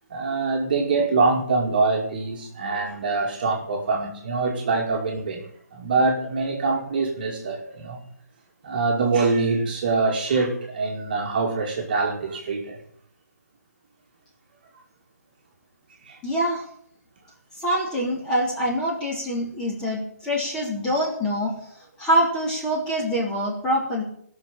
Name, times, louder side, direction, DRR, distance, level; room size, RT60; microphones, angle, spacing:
voice 1, 0.1-5.4 5.7-8.0 8.6-12.8 16.1-16.2, right 3 dB, 35° right, 0 dB, 2.3 m, -24 dB
voice 2, 16.2-16.7 17.6-21.6 22.0-24.0, equal, 10° left, -4 dB, 3.2 m, -25 dB
16.5 x 6.6 x 9.9 m, 0.66 s
hypercardioid pair, 170°, 9 cm